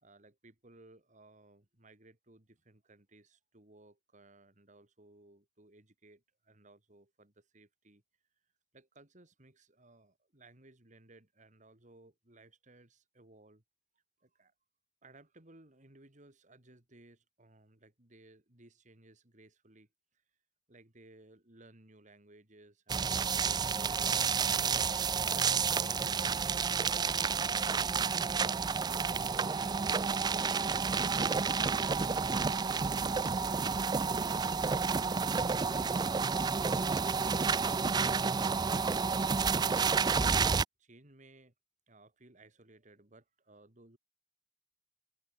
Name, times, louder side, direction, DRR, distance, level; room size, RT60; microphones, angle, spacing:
voice 1, 0.0-8.0 8.7-13.6 14.2-14.5 15.0-19.9 20.7-24.2 38.5-41.5 41.9-44.0, right 2 dB, 45° right, 3.3 m, -60 dB
sound 1, 22.9-40.6, right 5 dB, 25° right, 0.4 m, -30 dB
sound 2, 24.7-30.6, right 2 dB, 85° right, 7.0 m, -56 dB
head